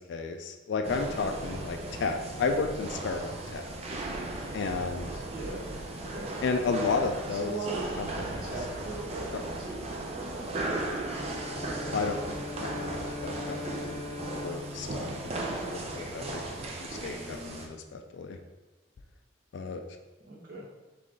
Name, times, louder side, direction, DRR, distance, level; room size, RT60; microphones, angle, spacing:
voice 1, 0.0-3.7 4.5-5.1 6.4-7.6 8.0-8.5 11.9-13.9 14.3-18.4 19.5-19.8, left 4 dB, 70° left, 5 dB, 0.3 m, -33 dB
sound 1, 0.8-17.7, right 2 dB, 35° right, 0.5 m, -37 dB
voice 2, 5.2-5.7 6.1-6.3 7.3-7.9 8.4-9.8 10.1-10.5 20.3-20.7, right 3 dB, 55° right, -5 dB, 1.1 m, -39 dB
Bowed string instrument, 10.9-16.1, left 2 dB, 20° left, 0.9 m, -41 dB
3.6 x 3.1 x 3.8 m, 1.2 s
head